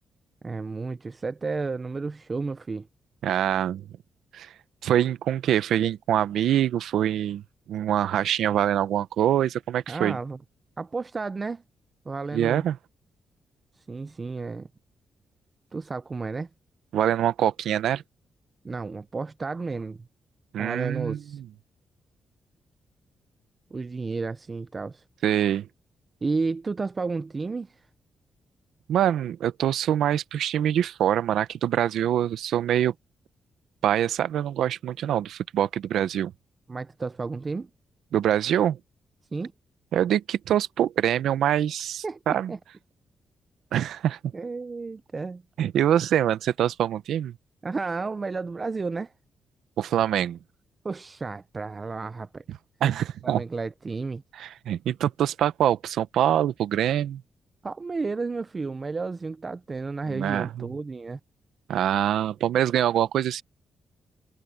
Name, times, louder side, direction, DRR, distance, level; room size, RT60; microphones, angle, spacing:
voice 1, 0.4-2.9 9.9-10.4 10.8-11.6 12.1-12.7 13.8-14.7 15.7-16.5 18.6-20.1 20.6-21.4 23.7-25.0 26.2-27.8 36.7-37.7 39.3-39.5 42.0-42.6 44.3-45.4 47.6-49.1 50.8-52.4 53.2-54.2 57.6-61.2, right 4 dB, 25° right, 0.4 m, -32 dB
voice 2, 3.2-3.8 4.3-4.5 4.8-7.4 7.7-10.2 12.3-12.8 16.9-18.0 20.5-21.5 25.2-25.7 28.9-32.9 33.8-36.3 38.1-38.8 39.9-42.5 43.7-44.2 45.6-47.3 49.8-50.4 52.8-53.4 54.3-57.2 60.1-60.7 61.7-63.4, right 10 dB, 85° right, 0.7 m, -24 dB
wide cardioid pair, 170°, 0 cm